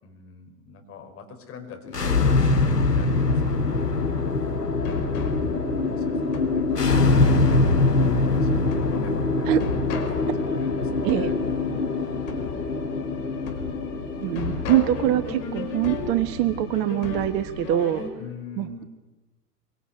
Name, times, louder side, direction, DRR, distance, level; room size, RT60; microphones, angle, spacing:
voice 1, 0.0-4.0 5.8-9.6 10.0-10.3 10.6-11.3 18.2-18.9, left 4 dB, 30° left, 4 dB, 5.0 m, -44 dB
sound 1, 1.9-16.8, left 3 dB, 85° left, 2.2 m, -24 dB
sound 2, 4.8-18.1, left 6 dB, 50° left, 5.4 m, -35 dB
voice 2, 14.2-18.0 18.6-18.8, right 13 dB, 35° right, 11 dB, 1.2 m, -24 dB
25.0 x 24.0 x 9.3 m, 1.2 s
figure-of-eight pair, 95°, 47 cm